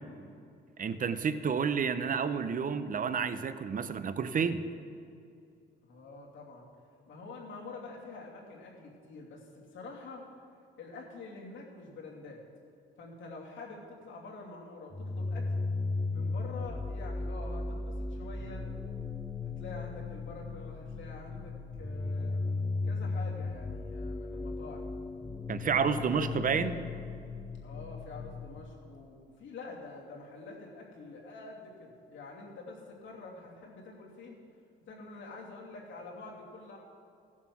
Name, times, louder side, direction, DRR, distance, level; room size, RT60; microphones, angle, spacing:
voice 1, 0.8-4.6 25.5-26.7, right 6 dB, 45° right, 12 dB, 0.7 m, -30 dB
voice 2, 5.9-6.7 7.1-10.2 10.8-12.4 13.0-15.5 16.1-18.7 19.4-24.9 25.6-26.9 27.6-34.4 34.8-36.8, left 3 dB, 75° left, -3 dB, 2.7 m, -47 dB
sound 1, 14.9-28.6, left 3 dB, 15° left, 0.8 m, -36 dB
15.0 x 7.3 x 6.1 m, 2.5 s
cardioid pair, 90°, 20 cm